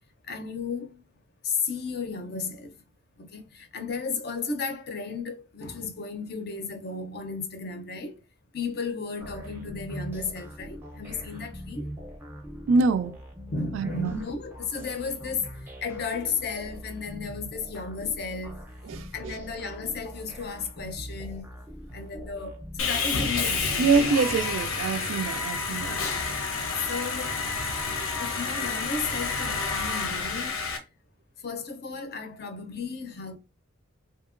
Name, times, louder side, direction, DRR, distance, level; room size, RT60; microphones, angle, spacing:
voice 1, 0.2-1.0 1.4-2.8 3.2-8.2 8.5-11.9 13.5-18.7 18.9-21.5 21.9-24.0 25.9-26.4 26.9-27.4 28.2-30.8 31.4-33.4, left 5 dB, 50° left, 0.5 m, -34 dB
sound 1, 9.2-24.0, equal, 10° right, 0.5 m, -42 dB
voice 2, 12.7-13.2 13.7-14.2 18.9-19.0 23.8-26.0, right 4 dB, 70° right, 0.3 m, -24 dB
Sawing, 22.8-30.8, left 4 dB, 85° left, 0.7 m, -29 dB
2.8 x 2.7 x 2.4 m
head